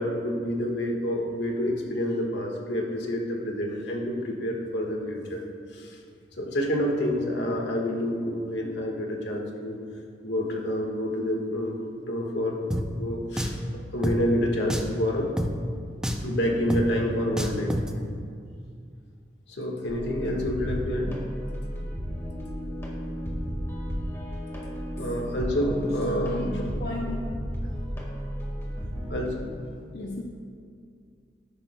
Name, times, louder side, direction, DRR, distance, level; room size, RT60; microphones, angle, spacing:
voice 1, 0.0-5.4 5.7-6.0 6.4-9.7 10.2-11.8 12.1-13.5 13.9-15.3 16.2-17.8 19.5-21.2 24.9-26.6 29.1-29.4, equal, 85° left, 0 dB, 1.5 m, -28 dB
Drum, 12.7-12.8 13.4-13.6 14.0-14.2 14.7-15.0 15.4-15.5 16.0-16.3 16.7-16.8 17.4-17.9, equal, 5° right, 0.5 m, -28 dB
sound 1, 19.9-29.3, equal, 15° left, 1.6 m, -33 dB
voice 2, 25.4-27.2 29.9-30.2, left 2 dB, 65° left, -1 dB, 0.7 m, -35 dB
13.0 x 11.0 x 2.2 m, 2.3 s
head